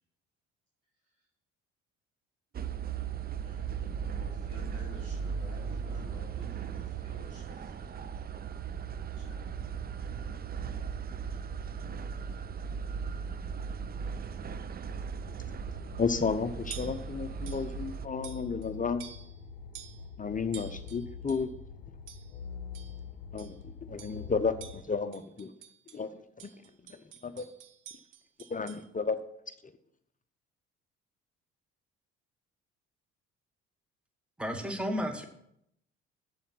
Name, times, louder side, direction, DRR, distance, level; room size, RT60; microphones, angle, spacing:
sound 1, 2.5-18.1, right 6 dB, 25° right, 0.5 m, -37 dB
voice 1, 3.4-8.1 9.2-9.5, right 1 dB, 90° right, -7 dB, 4.4 m, -51 dB
sound 2, 15.2-24.8, left 6 dB, 85° left, 0.7 m, -45 dB
voice 2, 16.0-19.0 20.2-21.5 23.3-25.5 25.9-26.5 26.8-27.5 28.5-29.2, left 5 dB, 20° left, 10 dB, 0.8 m, -32 dB
sound 3, 16.1-16.3 16.7-17.1 17.5-17.7 18.2-18.7 19.0-19.4 19.7-20.1 20.5-21.5 22.1-22.4 22.7-23.0 23.4-23.6 24.0-24.3 24.6-26.0 26.4-28.9, right 9 dB, 55° right, 0.9 m, -49 dB
voice 3, 34.4-35.2, equal, 5° right, 7 dB, 1.3 m, -32 dB
8.0 x 7.3 x 5.8 m, 0.75 s
figure-of-eight pair, 50°, 37 cm